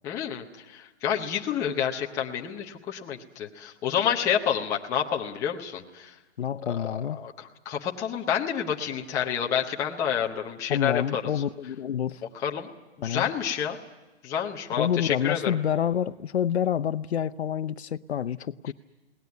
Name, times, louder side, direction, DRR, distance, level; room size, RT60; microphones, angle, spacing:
voice 1, 0.0-6.1 6.6-11.2 12.4-12.7 13.0-13.8 14.2-15.5, left 8 dB, 10° left, 0.7 m, -29 dB
voice 2, 6.4-7.2 10.7-12.2 13.0-13.3 14.8-18.7, left 9 dB, 70° left, 0.8 m, -28 dB
21.5 x 18.5 x 9.4 m
hypercardioid pair, 160°, 33 cm